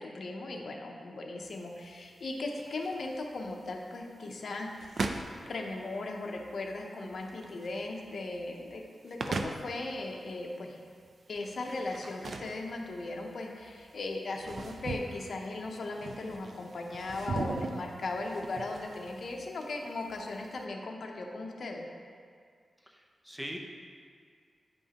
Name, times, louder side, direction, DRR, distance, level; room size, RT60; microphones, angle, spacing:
voice 1, 0.0-10.8 11.3-21.9, left 2 dB, 65° left, 1 dB, 0.8 m, -38 dB
sound 1, 1.4-20.6, right 3 dB, 60° right, 0.4 m, -41 dB
voice 2, 22.8-23.6, equal, 10° right, 1 dB, 0.8 m, -42 dB
9.1 x 5.3 x 2.9 m, 2.1 s
cardioid pair, 85°, 0 cm